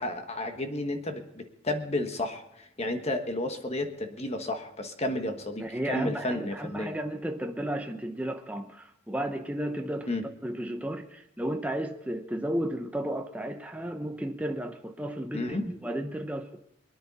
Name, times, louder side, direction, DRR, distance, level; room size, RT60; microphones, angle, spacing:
voice 1, 0.0-6.9 10.1-10.2 15.3-15.6, left 1 dB, 30° left, 1.3 m, -32 dB
voice 2, 5.6-16.6, right 1 dB, 5° right, 0.7 m, -33 dB
22.5 x 10.0 x 4.1 m
head